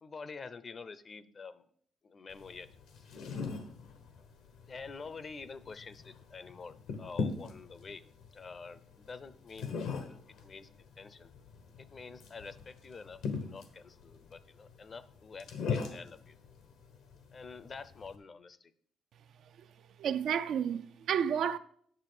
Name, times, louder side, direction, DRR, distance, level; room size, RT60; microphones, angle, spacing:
voice 1, 0.0-1.6 2.0-2.7 3.0-3.1 3.3-3.4 4.7-8.0 8.3-11.3 11.8-16.3 17.3-18.7, left 4 dB, 40° left, 0.6 m, -48 dB
sound 1, 2.3-18.2, left 5 dB, 85° left, 1.3 m, -41 dB
voice 2, 20.0-21.6, right 8 dB, 70° right, 0.4 m, -31 dB
8.9 x 6.7 x 4.9 m
cardioid pair, 90°, 0 cm